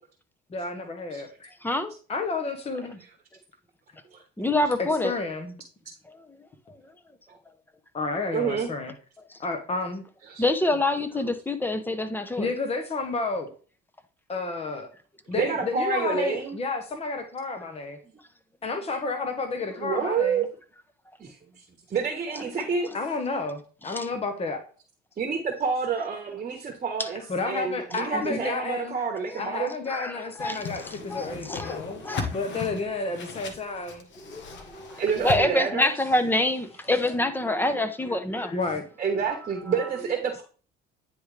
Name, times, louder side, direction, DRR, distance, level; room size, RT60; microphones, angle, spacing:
voice 1, 0.5-1.5 2.1-3.0 4.8-5.5 7.9-8.9 9.4-10.0 12.4-13.5 14.3-14.9 15.3-18.0 18.6-20.4 22.9-24.6 27.3-29.0 29.4-32.0 32.3-34.0 38.3-38.8 40.0-40.1, left 3 dB, 30° left, 1.1 m, -31 dB
voice 2, 1.6-1.9 4.4-5.1 6.1-6.3 6.7-6.8 9.3-9.4 10.4-12.5 22.4-22.5 23.9-24.1 27.0-27.1 28.1-28.5 29.3-29.5 29.9-30.6 30.9-32.3 34.2-38.5, left 1 dB, 10° left, 0.8 m, -27 dB
voice 3, 8.3-8.7 10.2-10.4 15.4-16.6 19.8-20.5 21.2-22.9 25.2-29.7 35.0-35.9 39.0-40.4, right 6 dB, 35° right, 1.2 m, -28 dB
Whoosh swoosh swish, 30.4-35.4, left 5 dB, 60° left, 1.3 m, -37 dB
9.6 x 3.6 x 3.3 m
supercardioid pair, 90°, 21 cm